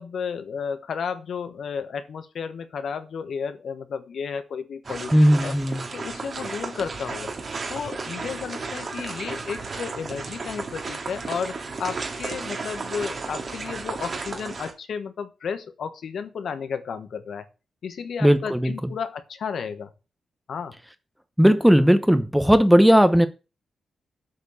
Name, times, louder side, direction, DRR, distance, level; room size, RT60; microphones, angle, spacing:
voice 1, 0.0-5.5 5.9-7.3 7.7-17.5 17.8-19.9 20.5-20.7, left 6 dB, 70° left, 1.2 m, -33 dB
sound 1, 4.8-14.7, right 4 dB, 45° right, 2.1 m, -34 dB
voice 2, 5.1-5.8 18.2-18.9 21.4-23.3, equal, ahead, 0.9 m, -17 dB
8.1 x 4.5 x 7.0 m
cardioid pair, 115°, 0 cm